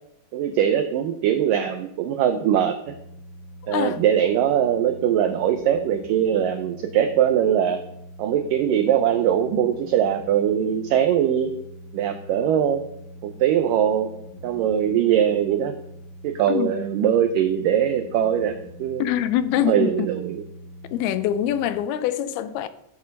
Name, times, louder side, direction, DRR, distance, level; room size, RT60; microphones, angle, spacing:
voice 1, 0.3-2.8 3.7-7.8 8.2-11.5 11.9-12.8 13.2-14.1 14.4-15.7 16.2-18.5 18.8-19.0 19.7-20.4, right 9 dB, 80° right, 1.9 m, -21 dB
sound 1, 2.8-21.7, equal, 60° right, 1.1 m, -43 dB
voice 2, 3.7-4.0 16.5-16.7 19.0-20.1 20.9-22.7, left 10 dB, 80° left, 2.4 m, -24 dB
13.5 x 8.0 x 5.3 m
omnidirectional pair, 4.8 m